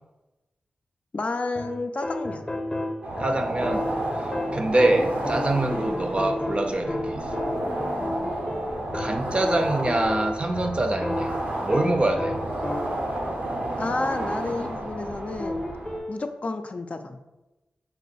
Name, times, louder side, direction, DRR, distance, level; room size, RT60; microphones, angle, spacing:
voice 1, 1.1-2.4 13.8-15.6 16.1-17.2, left 3 dB, 45° left, 6 dB, 0.4 m, -30 dB
sound 1, 1.5-13.2 15.4-16.2, left 1 dB, 25° left, 0.7 m, -32 dB
sound 2, 3.0-16.0, right 1 dB, 80° right, 0.7 m, -31 dB
voice 2, 3.2-3.9 4.2-7.3 8.9-12.4, right 2 dB, 40° right, 5 dB, 0.5 m, -25 dB
4.3 x 2.3 x 3.9 m, 1.0 s
cardioid pair, 40°, 3 cm